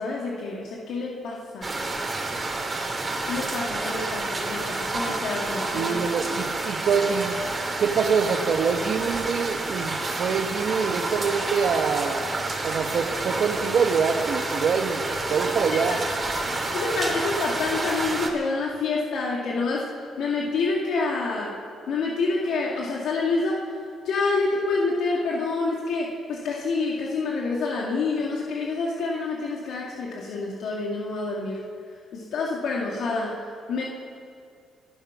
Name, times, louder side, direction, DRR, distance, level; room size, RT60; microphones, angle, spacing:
voice 1, 0.0-1.7 3.3-6.0 16.7-19.9 20.2-21.6 21.9-23.6 24.0-31.6 32.1-33.4 33.7-33.8, left 3 dB, 75° left, -3 dB, 2.2 m, -27 dB
sound 1, 1.6-18.3, right 2 dB, 25° right, 2.8 m, -29 dB
voice 2, 5.7-7.4 7.8-12.4 12.6-15.0 15.3-16.0, right 6 dB, 65° right, 4 dB, 1.2 m, -25 dB
26.5 x 8.9 x 6.1 m, 2.3 s
cardioid pair, 90°, 0 cm